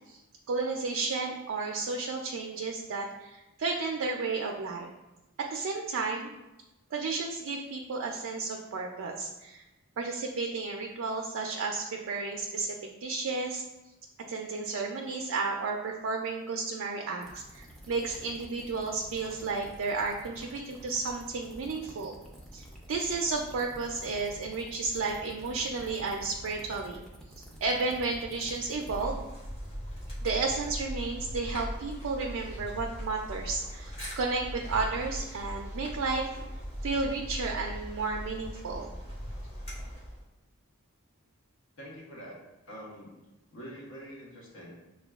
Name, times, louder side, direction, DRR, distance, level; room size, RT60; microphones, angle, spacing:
voice 1, 0.5-4.9 5.4-6.3 6.9-9.6 10.0-12.8 13.0-13.6 14.3-22.1 22.5-27.0 27.6-29.3 30.2-36.3 36.8-39.0, right 4 dB, 60° right, 1 dB, 0.3 m, -32 dB
sound 1, 17.2-29.0, equal, ahead, 0.4 m, -49 dB
sound 2, 28.8-40.2, equal, 25° left, 1.0 m, -39 dB
voice 2, 41.8-43.2 43.5-44.8, equal, 60° left, -3 dB, 0.9 m, -45 dB
6.1 x 2.2 x 2.3 m, 1.0 s
head